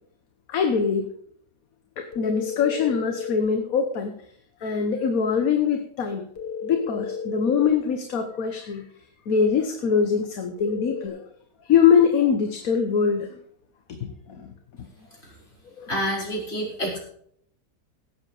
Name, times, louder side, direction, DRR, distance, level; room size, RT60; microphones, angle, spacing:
voice 1, 0.5-1.1 2.0-4.2 4.6-6.3 6.6-8.8 9.3-11.2 11.6-13.3 13.9-14.5 15.8-15.9, left 6 dB, 60° left, 6 dB, 1.5 m, -23 dB
sound 1, 2.1-3.5 6.4-7.8 10.6-11.1, left 6 dB, 80° left, 2.0 m, -33 dB
voice 2, 15.9-17.0, equal, 40° left, -3 dB, 5.2 m, -27 dB
17.0 x 7.5 x 4.9 m, 0.64 s
omnidirectional pair, 1.8 m